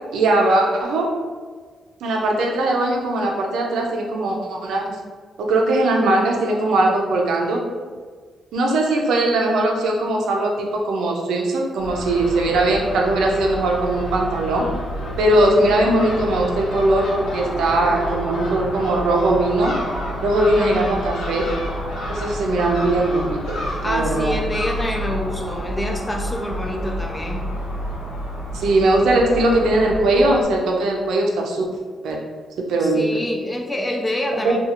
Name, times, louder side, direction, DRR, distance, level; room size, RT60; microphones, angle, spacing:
voice 1, 0.1-1.1 2.0-5.0 5.4-7.6 8.5-14.7 15.2-19.7 20.2-21.5 22.1-23.6 23.9-24.4 28.5-31.7 32.0-32.2 32.6-33.0 34.3-34.6, right 2 dB, 90° right, 0 dB, 0.5 m, -20 dB
Crow / Gull seagull, 11.8-30.4, equal, 75° left, 0.8 m, -29 dB
voice 2, 20.4-20.8 23.8-27.4 32.8-34.6, left 1 dB, 10° left, 1 dB, 0.3 m, -27 dB
2.5 x 2.3 x 2.8 m, 1.6 s
wide cardioid pair, 165°, 0 cm